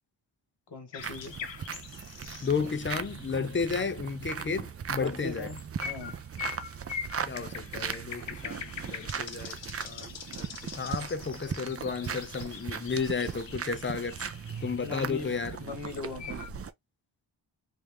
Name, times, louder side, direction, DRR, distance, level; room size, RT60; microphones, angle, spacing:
voice 1, 0.7-1.3 4.9-6.2 14.8-16.4, left 3 dB, 55° left, 1.2 m, -39 dB
sound 1, 0.9-4.4 5.0-16.5, left 7 dB, 70° left, 0.8 m, -44 dB
sound 2, 1.0-16.7, right 7 dB, 35° right, 0.4 m, -38 dB
voice 2, 2.4-5.5 7.2-9.6 9.8-14.2 14.6-15.6, left 5 dB, 25° left, 0.5 m, -33 dB
3.1 x 2.6 x 3.3 m
wide cardioid pair, 100°, 46 cm